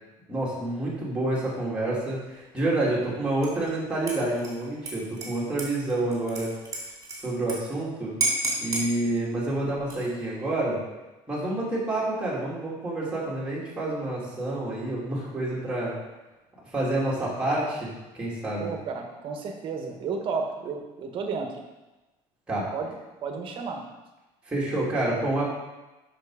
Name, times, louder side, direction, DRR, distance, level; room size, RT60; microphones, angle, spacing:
voice 1, 0.3-6.5 7.2-8.2 8.6-10.8 11.3-16.0 16.7-17.9 18.1-18.7 22.5-22.7 24.5-25.4, right 2 dB, 10° right, -6 dB, 2.7 m, -28 dB
Dishes pots and pans / Liquid, 3.4-3.7 4.1-7.6 7.8-7.9 8.2-8.9 9.7-10.2, right 2 dB, 25° right, 2.5 m, -31 dB
voice 2, 18.6-21.5 22.7-22.9 23.2-23.8, right 5 dB, 45° right, 3 dB, 1.3 m, -32 dB
7.5 x 6.2 x 4.9 m, 1.1 s
cardioid pair, 150°, 12 cm